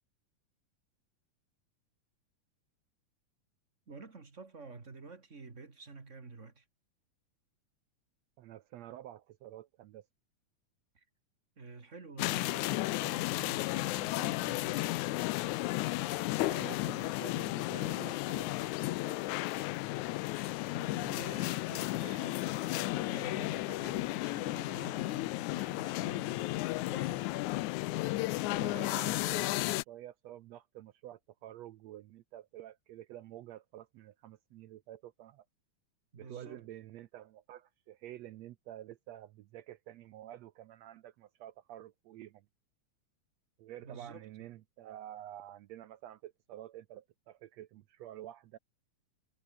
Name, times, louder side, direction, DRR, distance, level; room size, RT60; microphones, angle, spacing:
voice 1, 3.9-6.6 10.9-11.0 11.6-14.9 20.7-26.5 26.9-27.4 36.1-36.6 43.8-44.3, right 4 dB, 25° right, 2.4 m, -49 dB
voice 2, 8.4-10.1 16.4-19.3 28.5-35.5 36.1-42.5 43.6-48.6, right 13 dB, 70° right, 1.8 m, -49 dB
sound 1, 12.2-29.8, left 19 dB, 85° left, 2.0 m, -33 dB
omnidirectional pair, 3.4 m